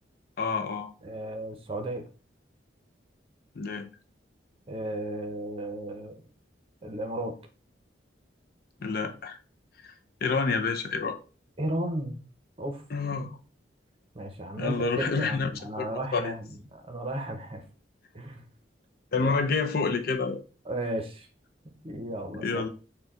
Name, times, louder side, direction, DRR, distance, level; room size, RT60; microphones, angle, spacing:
voice 1, 0.4-0.9 3.6-3.9 8.8-9.4 9.8-9.9 10.2-11.2 12.9-13.4 14.6-15.5 15.8-15.9 16.1-16.3 19.1-20.4 22.4-22.7, left 4 dB, 55° left, 0.5 m, -28 dB
voice 2, 1.0-2.0 4.7-6.2 6.8-7.3 11.6-12.3 12.6-12.8 14.1-17.6 18.1-18.4 19.2-19.3 20.7-21.3 21.8-22.7, right 1 dB, 30° right, 0.7 m, -34 dB
4.5 x 2.2 x 3.7 m
head